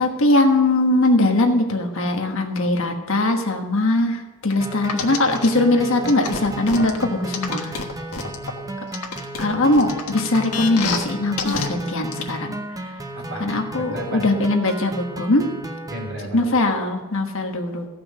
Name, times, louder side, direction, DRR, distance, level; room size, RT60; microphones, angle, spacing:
voice 1, 0.0-7.7 9.4-12.6 13.4-15.5 16.3-17.9, left 2 dB, 60° left, 4 dB, 1.3 m, -20 dB
sound 1, 4.6-16.1, right 1 dB, 15° right, 0.8 m, -34 dB
sound 2, 4.9-5.5 6.1-8.5 8.9-11.0 11.4-11.7 12.1-12.2, left 5 dB, 90° left, 1.4 m, -27 dB
voice 2, 8.1-8.7 13.1-14.4 15.9-16.6, right 1 dB, 60° right, -2 dB, 3.5 m, -35 dB
15.0 x 5.9 x 6.4 m, 1.2 s
head